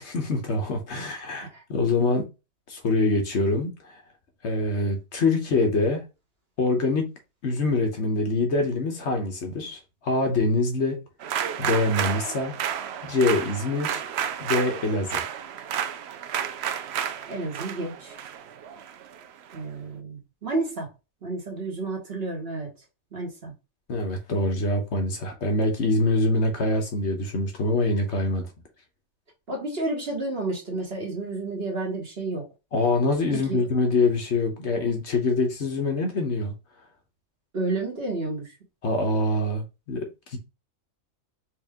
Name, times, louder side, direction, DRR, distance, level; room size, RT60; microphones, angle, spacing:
voice 1, 0.0-2.2 2.7-4.0 4.4-6.0 6.6-7.1 7.4-11.0 11.6-12.6 13.0-14.0 14.4-15.2 23.9-28.5 32.7-36.5 38.8-40.4, left 2 dB, 55° left, 1.3 m, -25 dB
sound 1, 11.2-19.6, right 9 dB, 65° right, 0.7 m, -31 dB
voice 2, 17.3-18.2 19.5-20.9 21.2-22.7 23.1-23.5 29.5-32.5 33.3-33.7 37.5-38.5, right 2 dB, 50° right, 1.5 m, -31 dB
4.7 x 2.5 x 3.6 m
omnidirectional pair, 1.4 m